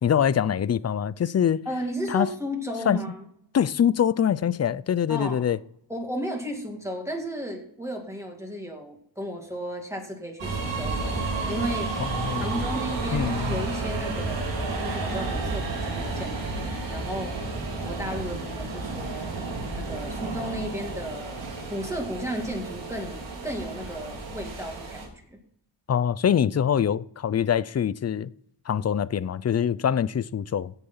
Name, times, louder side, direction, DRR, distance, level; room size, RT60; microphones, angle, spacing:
voice 1, 0.0-1.6 2.1-2.3 2.9-3.0 3.5-5.6 12.0-12.6 13.1-13.6 25.9-28.3 28.7-30.7, left 8 dB, 35° left, 0.5 m, -24 dB
voice 2, 1.7-3.3 5.1-5.5 5.9-11.2 11.5-11.9 12.3-17.3 17.8-19.3 19.7-21.4 21.7-25.4, equal, 5° right, 2.4 m, -34 dB
sound 1, 10.4-25.1, right 3 dB, 80° right, 4.2 m, -31 dB
16.5 x 6.8 x 5.6 m
wide cardioid pair, 150°, 44 cm